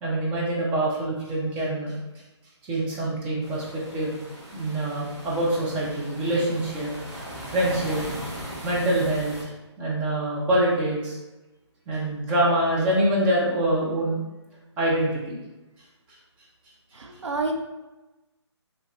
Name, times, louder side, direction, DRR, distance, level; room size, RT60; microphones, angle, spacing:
voice 1, 0.0-1.9 2.6-4.2 4.5-6.9 7.5-8.0 8.6-9.5 9.8-11.2 11.9-14.2 14.8-15.4, right 1 dB, 10° right, -4 dB, 0.3 m, -25 dB
sound 1, 3.4-9.4, equal, 35° right, 1.2 m, -38 dB
voice 2, 16.9-17.5, right 3 dB, 80° right, 4 dB, 0.6 m, -29 dB
3.1 x 2.8 x 2.3 m, 1.1 s
figure-of-eight pair, 150°, 15 cm